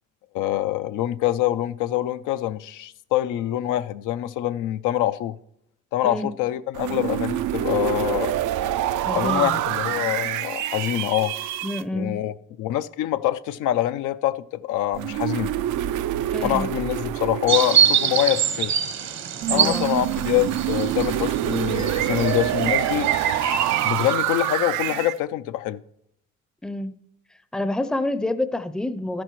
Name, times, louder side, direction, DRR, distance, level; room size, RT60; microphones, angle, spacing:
voice 1, 0.3-5.4 5.9-8.4 9.1-11.3 11.9-12.3 12.6-15.5 16.4-18.7 19.5-23.1 23.8-25.8, left 13 dB, 85° left, 0.5 m, -25 dB
sound 1, 6.7-11.8 14.9-18.7 19.4-25.2, right 12 dB, 75° right, 0.5 m, -26 dB
voice 2, 9.0-9.6 11.6-12.2 16.3-16.7 19.5-19.9 26.6-27.0 27.5-29.2, left 1 dB, 5° left, 0.5 m, -28 dB
sound 2, 17.5-24.1, right 8 dB, 60° right, 0.9 m, -24 dB
13.0 x 10.5 x 3.1 m
cardioid pair, 90°, 30 cm